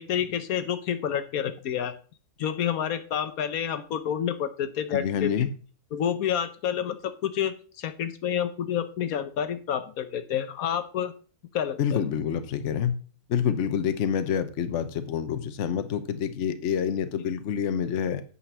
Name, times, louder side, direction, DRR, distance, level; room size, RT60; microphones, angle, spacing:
voice 1, 0.0-1.9 2.4-5.5 5.9-11.1 11.5-12.0, left 9 dB, 80° left, 1.3 m, -29 dB
voice 2, 4.9-5.5 11.8-12.9 13.3-18.2, left 8 dB, 60° left, 1.1 m, -27 dB
8.8 x 5.7 x 6.1 m
omnidirectional pair, 1.5 m